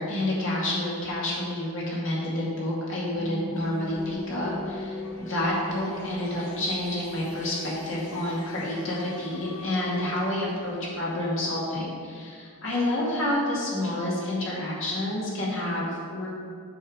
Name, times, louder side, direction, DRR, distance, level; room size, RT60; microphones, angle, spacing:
voice 1, 0.0-16.3, left 1 dB, 60° left, -5 dB, 2.3 m, -29 dB
Bass guitar, 3.2-9.4, equal, 35° right, 1.4 m, -42 dB
sound 1, 3.5-11.4, left 2 dB, 85° left, 1.0 m, -43 dB
7.2 x 6.1 x 5.0 m, 2.1 s
head